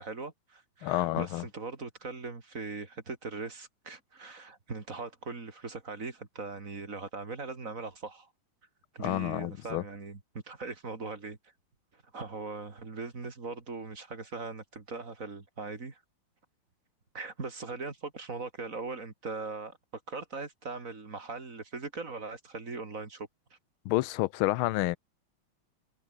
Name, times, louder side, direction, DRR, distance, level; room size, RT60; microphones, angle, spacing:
voice 1, 0.0-8.3 8.9-10.2 10.4-11.4 11.9-16.0 17.1-19.7 20.1-23.3, right 3 dB, 40° right, 3.2 m, -40 dB
voice 2, 0.8-1.4 9.0-9.8 23.8-25.0, left 17 dB, 80° left, 1.4 m, -29 dB
omnidirectional pair, 2.3 m